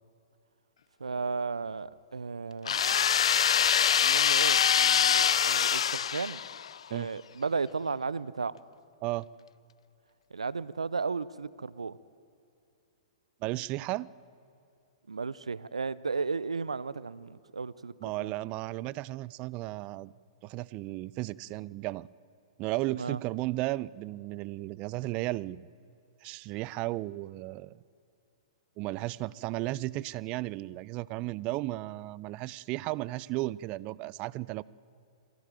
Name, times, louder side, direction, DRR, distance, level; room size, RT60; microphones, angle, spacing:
voice 1, 1.0-2.8 4.0-6.4 6.9-8.6 10.3-12.0 15.1-17.9 18.2-18.3 23.0-23.2, right 4 dB, 85° right, 19 dB, 0.6 m, -34 dB
sound 1, 2.6-6.8, left 8 dB, 70° left, 0.4 m, -24 dB
voice 2, 13.4-14.1 18.0-20.1 20.4-22.1 22.6-25.6 26.2-27.8 28.8-34.6, right 18 dB, 35° right, 22 dB, 0.5 m, -34 dB
22.5 x 15.5 x 9.1 m, 2.6 s
hypercardioid pair, 115°, 3 cm